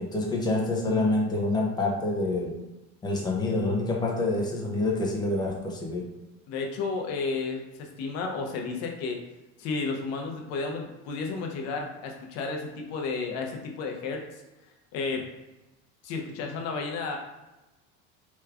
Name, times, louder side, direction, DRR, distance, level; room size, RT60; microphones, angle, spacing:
voice 1, 0.0-2.6 3.0-6.1, left 2 dB, 15° left, -2 dB, 0.5 m, -27 dB
voice 2, 6.5-9.2 9.6-14.2 14.9-15.2 16.0-17.2, left 4 dB, 50° left, 2 dB, 0.6 m, -32 dB
3.4 x 3.0 x 2.3 m, 1.0 s
cardioid pair, 150°, 32 cm